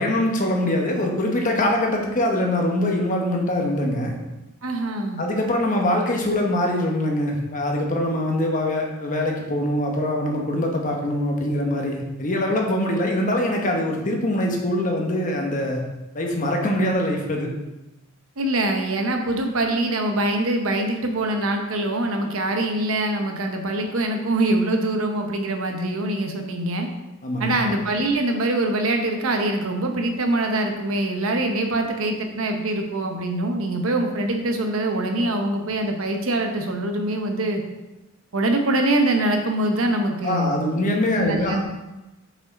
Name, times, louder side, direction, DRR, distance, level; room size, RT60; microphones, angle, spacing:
voice 1, 0.0-4.1 5.2-15.8 16.1-17.5 27.2-27.6 40.2-41.6, left 1 dB, 40° left, 1 dB, 1.0 m, -23 dB
voice 2, 4.6-5.2 18.4-26.9 27.4-37.6 38.3-40.5 41.2-41.6, right 1 dB, 90° right, 4 dB, 0.9 m, -24 dB
5.6 x 4.7 x 4.1 m, 1.0 s
head